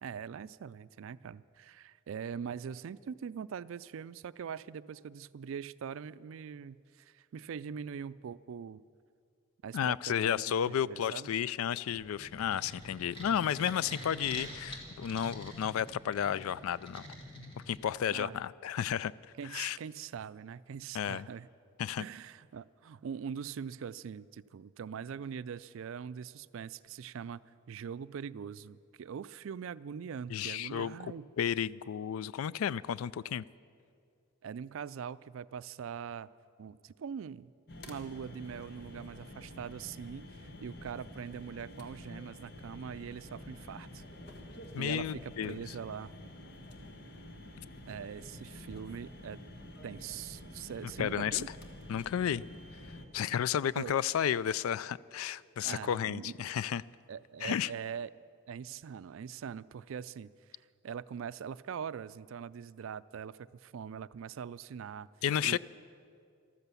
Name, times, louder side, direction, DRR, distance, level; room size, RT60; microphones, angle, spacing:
voice 1, 0.0-8.8 9.6-11.3 14.2-14.4 18.1-18.4 19.4-21.5 22.0-27.4 27.7-31.3 34.4-36.3 36.6-37.5 37.9-44.0 44.8-46.1 47.9-49.4 49.8-51.5 53.7-54.0 55.6-56.5 57.1-58.1 58.5-60.3 60.8-65.1 65.4-65.6, right 7 dB, 75° right, 18 dB, 0.3 m, -42 dB
voice 2, 9.7-17.0 17.7-19.1 19.5-19.8 20.9-21.3 21.8-22.0 30.3-33.4 44.7-45.7 50.8-51.4 51.9-52.4 53.1-56.8 57.4-57.7 65.2-65.6, left 9 dB, 90° left, 20 dB, 0.3 m, -32 dB
sound 1, 12.0-18.2, equal, 25° left, 2.1 m, -47 dB
sound 2, 37.7-53.1, left 1 dB, 50° left, 1.4 m, -49 dB
14.0 x 13.0 x 6.9 m, 2.3 s
head